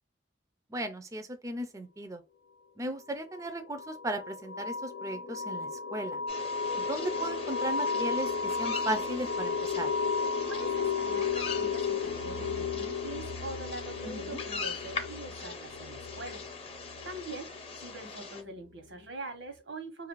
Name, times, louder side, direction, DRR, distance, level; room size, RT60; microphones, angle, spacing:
voice 1, 0.7-2.2 2.8-6.2 6.9-9.9 14.0-14.4, right 1 dB, 20° right, 0.3 m, -36 dB
sound 1, 3.3-17.8, left 5 dB, 75° left, 0.4 m, -34 dB
sound 2, 6.3-18.4, left 4 dB, 35° left, 0.6 m, -41 dB
voice 2, 10.5-16.4 17.0-17.5 17.8-20.1, right 2 dB, 85° right, 1.0 m, -43 dB
2.9 x 2.4 x 3.0 m
head